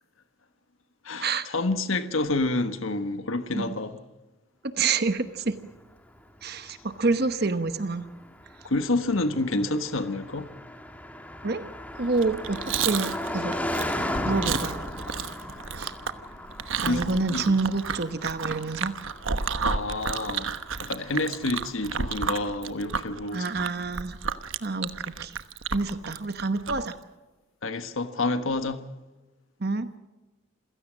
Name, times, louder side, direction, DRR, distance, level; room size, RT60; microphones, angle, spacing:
voice 1, 1.0-4.0 8.6-10.5 16.8-17.6 19.6-23.5 27.6-28.8, left 2 dB, 75° left, 1.4 m, -28 dB
voice 2, 4.6-5.5 6.4-8.1 11.4-11.6 11.9-12.6 12.8-13.5 14.2-14.8 15.8-15.9 16.8-18.9 23.3-24.2 24.6-25.4 25.7-26.9 29.6-29.9, right 3 dB, 50° right, 1.0 m, -27 dB
Car passing by, 5.6-22.1, left 1 dB, 5° left, 1.5 m, -37 dB
Chewing mastication, 12.1-26.9, right 6 dB, 70° right, 1.1 m, -32 dB
28.0 x 16.5 x 6.3 m
head